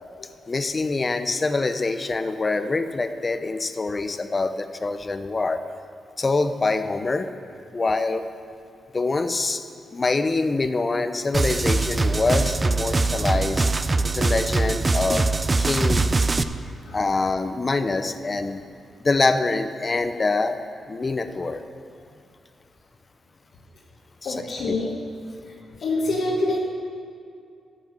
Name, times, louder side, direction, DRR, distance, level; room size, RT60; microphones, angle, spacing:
voice 1, 0.5-5.6 6.2-7.3 7.7-8.3 8.9-9.6 9.9-13.7 14.0-15.3 15.6-16.5 16.9-18.6 19.0-20.6 20.9-21.6 24.2-24.8, left 3 dB, 35° left, 10 dB, 0.7 m, -25 dB
sound 1, 11.3-16.4, right 3 dB, 30° right, 0.5 m, -22 dB
voice 2, 24.2-25.0 25.8-26.6, left 2 dB, 70° left, -5 dB, 1.4 m, -25 dB
13.0 x 5.9 x 7.5 m, 2.4 s
cardioid pair, 70°, 0 cm